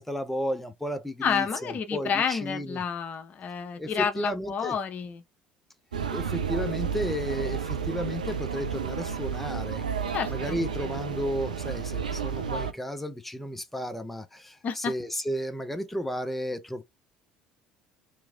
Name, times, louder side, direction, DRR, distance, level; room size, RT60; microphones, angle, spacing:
voice 1, 0.0-2.8 3.7-4.8 6.1-9.8 10.3-16.8, equal, 5° left, 0.6 m, -33 dB
voice 2, 1.2-5.2 10.1-10.6 14.6-14.9, left 6 dB, 40° left, 0.7 m, -29 dB
sound 1, 5.9-12.7, right 6 dB, 85° right, 0.4 m, -31 dB
3.5 x 3.0 x 2.4 m
figure-of-eight pair, 60°, 4 cm